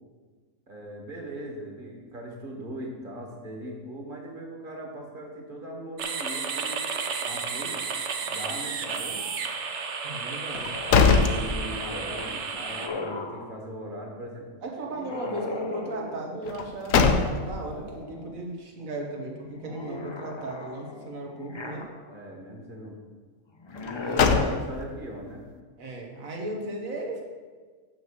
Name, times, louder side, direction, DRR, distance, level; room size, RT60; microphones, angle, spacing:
voice 1, 0.7-6.8 7.2-7.8 8.2-9.2 10.7-14.5 22.1-23.0 24.0-25.4, right 1 dB, 40° right, 0 dB, 1.8 m, -40 dB
sound 1, 6.0-12.9, right 5 dB, 60° right, 1.0 m, -32 dB
voice 2, 10.0-10.7 14.6-21.9 23.8-24.5 25.8-27.2, right 2 dB, 85° right, 1 dB, 1.8 m, -36 dB
sound 2, 10.5-12.2 12.5-12.6 16.5-17.7 23.8-25.0, left 5 dB, 80° left, 1.1 m, -23 dB
sound 3, 10.7-13.5 14.8-16.4 17.3-18.4 18.8-22.3 23.6-24.6, left 3 dB, 35° left, 0.4 m, -38 dB
6.7 x 6.2 x 6.7 m, 1.5 s
omnidirectional pair, 1.4 m